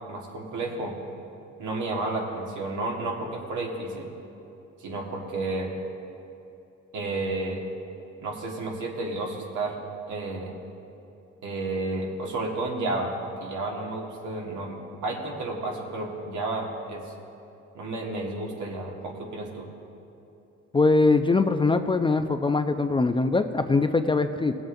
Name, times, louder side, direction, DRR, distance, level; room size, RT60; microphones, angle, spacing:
voice 1, 0.1-0.9 1.6-4.1 4.8-5.7 6.9-7.6 8.2-9.8 10.1-10.5 11.4-13.1 13.4-17.0 17.7-19.7, right 2 dB, 80° right, -1 dB, 1.7 m, -31 dB
voice 2, 20.7-24.5, left 3 dB, 15° left, 7 dB, 0.4 m, -22 dB
18.0 x 7.7 x 2.6 m, 2.8 s
cardioid pair, 90°, 30 cm